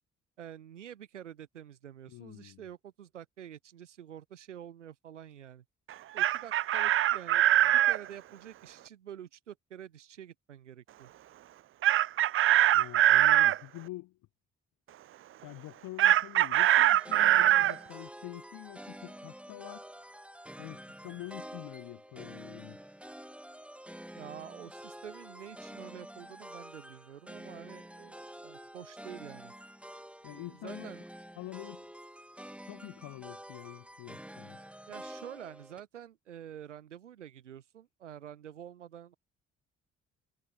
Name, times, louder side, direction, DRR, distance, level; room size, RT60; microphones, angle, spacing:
voice 1, 0.4-5.6 6.1-11.1 24.1-29.5 30.3-31.0 34.9-39.1, right 10 dB, 90° right, 6.0 m, -48 dB
voice 2, 2.1-2.6 12.7-14.2 15.4-19.9 20.6-22.8 30.2-30.9 31.4-31.9 32.7-34.6, left 18 dB, 70° left, 2.2 m, -46 dB
Chicken rooster, 5.9-8.0 11.8-13.6 16.0-17.8, right 13 dB, 40° right, 0.4 m, -23 dB
sound 1, 16.5-35.8, equal, 5° right, 4.0 m, -48 dB
hypercardioid pair, 40°, 35 cm